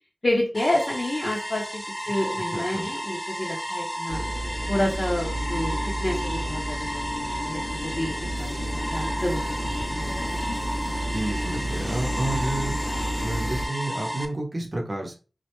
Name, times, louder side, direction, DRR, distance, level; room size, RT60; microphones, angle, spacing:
voice 1, 0.2-1.6 2.1-4.2 4.7-10.1, left 1 dB, 50° left, -3 dB, 0.6 m, -29 dB
sound 1, 0.5-14.3, equal, 5° right, 0.4 m, -33 dB
voice 2, 2.5-2.9 11.1-12.8 13.2-15.1, right 1 dB, 45° right, 0 dB, 0.7 m, -30 dB
subway ueno asakusa, 4.1-13.7, right 1 dB, 90° left, 0.6 m, -31 dB
sound 2, 5.3-14.3, left 5 dB, 20° left, 0.8 m, -42 dB
2.1 x 2.1 x 2.9 m, 0.35 s
wide cardioid pair, 55°, 0 cm